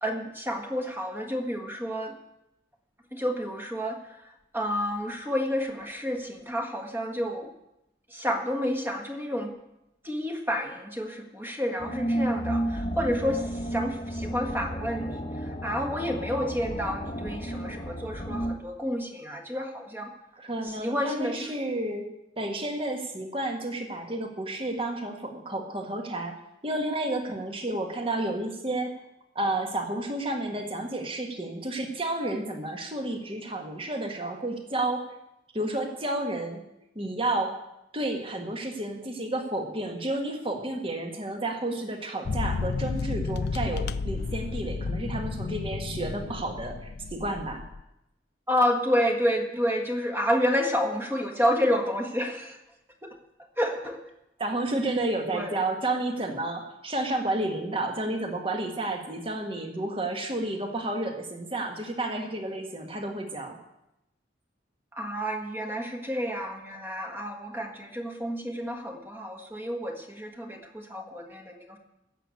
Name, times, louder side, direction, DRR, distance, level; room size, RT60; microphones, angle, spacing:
voice 1, 0.0-2.2 3.1-7.5 8.1-9.5 10.0-20.1 20.6-21.5 48.5-52.6 53.0-53.2 53.6-54.0 55.3-55.5 64.9-71.8, equal, 10° right, 4 dB, 1.5 m, -30 dB
sound 1, 11.8-18.6, right 1 dB, 30° left, 0.9 m, -32 dB
voice 2, 20.4-22.1 22.4-26.3 26.6-28.9 29.4-35.0 35.5-36.6 37.0-37.6 37.9-47.6 54.4-63.6, right 2 dB, 30° right, 4 dB, 1.8 m, -31 dB
sound 2, 42.3-47.8, left 4 dB, 60° left, 0.5 m, -32 dB
15.5 x 6.8 x 8.4 m, 0.88 s
head